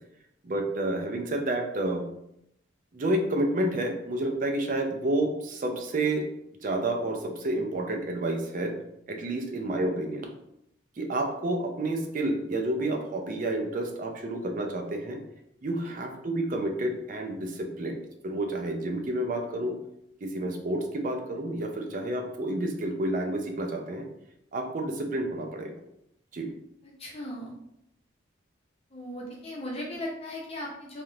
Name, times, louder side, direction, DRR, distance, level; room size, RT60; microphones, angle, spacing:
voice 1, 0.4-2.1 2.9-6.3 6.6-8.7 9.1-10.3 11.0-15.2 15.6-19.8 20.2-24.0 24.5-25.7 26.3-26.5, right 1 dB, 45° right, 3 dB, 0.5 m, -30 dB
voice 2, 26.8-27.5 28.9-31.0, left 1 dB, 30° left, -3 dB, 0.8 m, -37 dB
3.4 x 2.4 x 2.7 m, 0.79 s
head